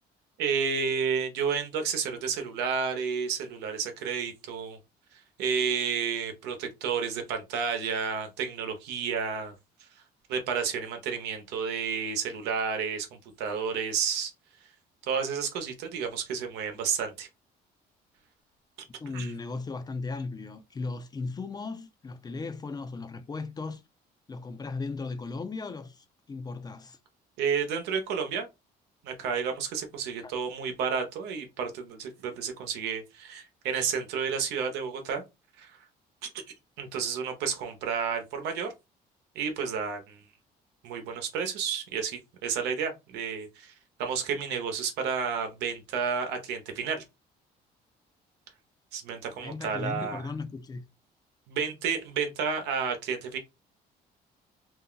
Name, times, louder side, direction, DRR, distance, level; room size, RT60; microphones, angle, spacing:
voice 1, 0.4-4.8 5.4-9.5 10.3-13.1 13.4-14.3 15.1-17.3 19.1-19.3 27.4-28.5 29.0-35.2 35.6-35.8 36.2-36.3 36.8-38.7 39.3-40.2 40.8-43.7 44.0-47.0 48.9-50.2 51.5-53.4, right 6 dB, 85° right, 0.9 m, -31 dB
voice 2, 19.0-23.8 24.3-27.0 30.2-30.3 49.4-50.8, left 3 dB, 25° left, 0.5 m, -36 dB
2.6 x 2.1 x 3.8 m
cardioid pair, 110°, 17 cm